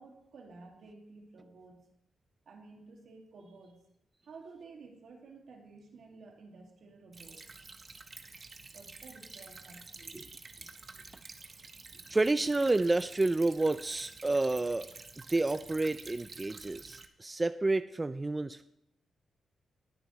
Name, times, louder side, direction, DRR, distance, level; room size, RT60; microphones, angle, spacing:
voice 1, 0.0-1.9 2.5-3.8 4.2-7.5 8.7-10.2, right 3 dB, 70° right, 1 dB, 2.1 m, -53 dB
Stream / Trickle dribble, 7.1-17.1, right 4 dB, 40° right, 0.9 m, -49 dB
voice 2, 12.1-14.9 15.3-18.6, right 2 dB, 20° right, 11 dB, 0.4 m, -29 dB
20.0 x 7.0 x 3.1 m, 0.82 s
cardioid pair, 90°, 0 cm